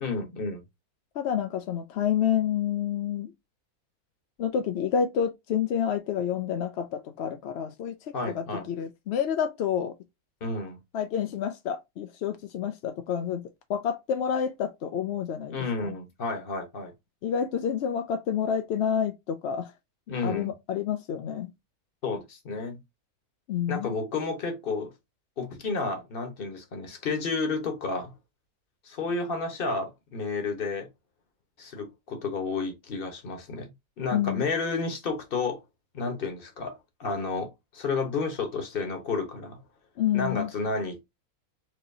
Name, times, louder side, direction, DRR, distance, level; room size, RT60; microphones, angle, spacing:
voice 1, 0.0-0.6 8.1-8.7 10.4-10.8 15.5-16.9 20.1-20.5 22.0-22.8 23.7-24.9 25.4-28.1 28.8-30.9 31.6-33.7 34.0-35.6 35.9-39.6 40.1-41.0, left 4 dB, 40° left, 1.1 m, -31 dB
voice 2, 1.2-3.3 4.4-9.9 10.9-15.5 15.8-15.9 17.2-19.7 20.2-21.5 23.5-23.9 34.1-34.4 40.0-40.5, left 8 dB, 70° left, 0.6 m, -29 dB
4.7 x 2.9 x 2.6 m
omnidirectional pair, 1.6 m